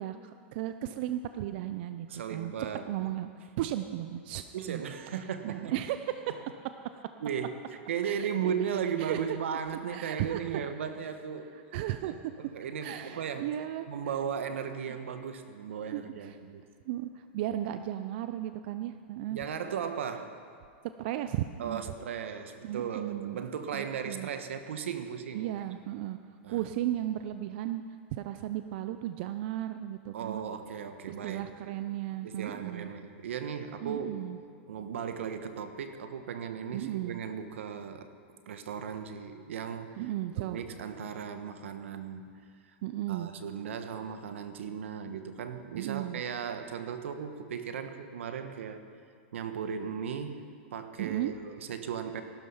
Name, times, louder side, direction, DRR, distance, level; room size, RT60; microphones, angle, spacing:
voice 1, 0.0-2.5 2.9-4.8 5.4-6.4 6.6-6.7 8.0-8.3 9.0-9.4 9.9-10.4 11.7-12.1 12.8-13.9 15.9-16.4 16.9-19.4 21.0-21.8 22.6-23.4 23.7-24.3 25.3-26.2 26.5-27.8 28.1-30.4 31.1-32.9 33.8-34.4 36.7-37.2 40.0-40.6 42.8-43.3 45.7-46.2 51.0-51.3, right 13 dB, 55° right, 10 dB, 0.6 m, -35 dB
voice 2, 2.1-3.1 4.5-5.7 7.2-7.5 7.9-11.5 12.0-13.5 13.9-16.7 19.3-20.4 21.6-25.5 26.4-26.6 30.1-31.7 32.2-34.2 34.7-38.1 38.5-40.0 40.4-42.4 43.1-48.8 49.3-50.4 50.7-52.2, right 7 dB, 85° right, 8 dB, 1.3 m, -36 dB
17.5 x 12.0 x 5.6 m, 2.2 s
supercardioid pair, 135°, 7 cm